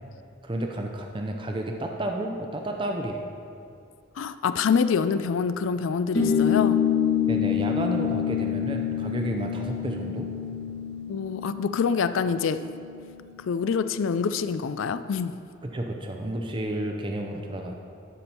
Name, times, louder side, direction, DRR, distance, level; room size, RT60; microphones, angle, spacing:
voice 1, 0.4-3.2 7.3-10.3 15.7-17.8, right 1 dB, 25° right, 2 dB, 0.6 m, -31 dB
voice 2, 4.2-6.8 11.1-12.6 13.4-15.4, left 6 dB, 75° left, 12 dB, 0.4 m, -26 dB
sound 1, 6.1-13.1, left 8 dB, 60° left, 1.8 m, -27 dB
12.0 x 5.3 x 4.4 m, 2.5 s
head